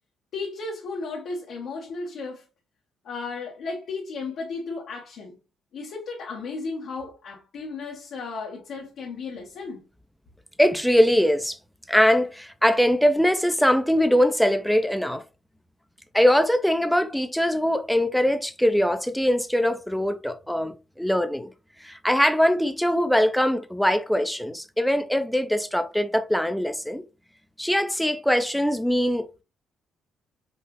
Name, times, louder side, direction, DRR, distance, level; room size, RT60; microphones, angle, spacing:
voice 1, 0.3-2.4 3.0-5.4 5.7-9.8, left 4 dB, 75° left, 1.2 m, -34 dB
voice 2, 10.6-11.6 11.9-15.2 16.1-21.5 21.8-27.0 27.6-29.4, equal, ahead, 0.5 m, -22 dB
5.7 x 2.4 x 3.0 m
cardioid pair, 90°, 0 cm